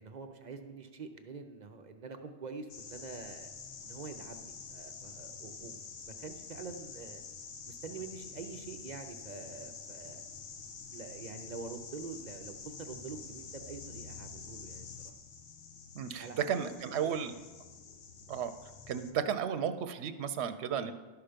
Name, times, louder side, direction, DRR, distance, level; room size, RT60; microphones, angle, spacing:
voice 1, 0.0-3.5 3.8-7.2 7.7-10.3 10.9-15.1 16.2-17.4, right 4 dB, 45° right, 6 dB, 0.7 m, -46 dB
sound 1, 2.7-19.1, left 5 dB, 90° left, 1.1 m, -48 dB
voice 2, 16.0-17.3 18.3-18.5 18.9-20.9, right 8 dB, 80° right, 10 dB, 0.9 m, -33 dB
12.0 x 5.8 x 5.1 m, 1.2 s
omnidirectional pair, 1.1 m